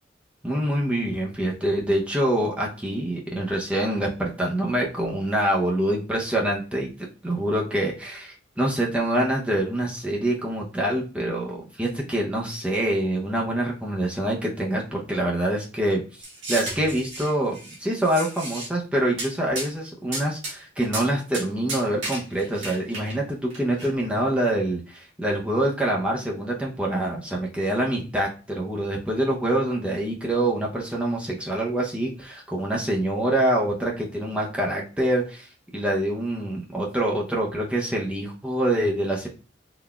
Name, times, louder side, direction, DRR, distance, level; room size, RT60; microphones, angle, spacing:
voice 1, 0.4-6.9 7.2-16.0 16.5-35.5 35.7-39.3, right 1 dB, 5° right, -3 dB, 0.6 m, -25 dB
sound 1, 16.2-17.8 18.0-18.7 19.2-19.3 19.5-19.7 20.1-20.5 20.8-21.1 21.3-21.4 21.7-23.1 23.5-23.9, right 2 dB, 90° right, 1.5 m, -33 dB
3.9 x 3.3 x 2.3 m, 0.34 s
head